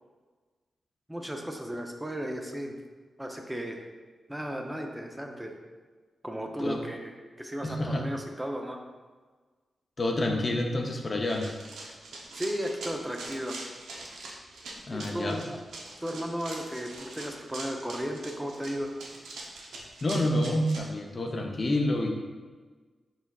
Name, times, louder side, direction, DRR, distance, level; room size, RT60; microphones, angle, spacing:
voice 1, 1.1-2.7 3.2-3.8 4.3-5.5 6.2-8.8 12.4-13.6 14.9-15.6 16.0-19.0, equal, 15° right, 3 dB, 0.5 m, -35 dB
voice 2, 7.6-8.0 10.0-11.6 14.9-15.4 20.0-22.1, left 1 dB, 45° left, 2 dB, 0.5 m, -28 dB
Run, 11.3-20.8, right 2 dB, 85° right, 0.5 m, -43 dB
4.0 x 4.0 x 2.3 m, 1.4 s
supercardioid pair, 45°, 0 cm